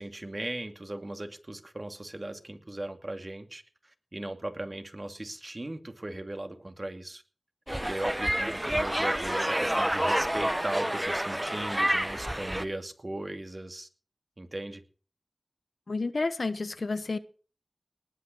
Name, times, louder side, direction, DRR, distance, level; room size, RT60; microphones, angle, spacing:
voice 1, 0.0-7.2 7.8-13.9 14.4-14.8, right 1 dB, 45° right, 2.5 m, -38 dB
sound 1, 7.7-12.6, right 1 dB, 15° right, 1.1 m, -28 dB
voice 2, 15.9-17.2, left 3 dB, 80° left, 1.1 m, -30 dB
19.5 x 6.6 x 7.9 m
wide cardioid pair, 40°, 0 cm